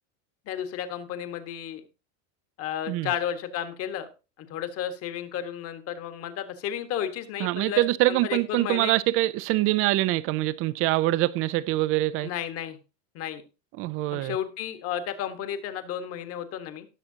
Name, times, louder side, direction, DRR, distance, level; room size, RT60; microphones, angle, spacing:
voice 1, 0.5-1.8 2.6-4.1 4.5-8.9 12.2-12.8 13.1-13.4 14.1-16.9, left 9 dB, 35° left, 1.5 m, -33 dB
voice 2, 7.4-12.3 13.8-14.4, right 17 dB, 35° right, 0.5 m, -24 dB
18.0 x 6.6 x 2.8 m
supercardioid pair, 150°, 40 cm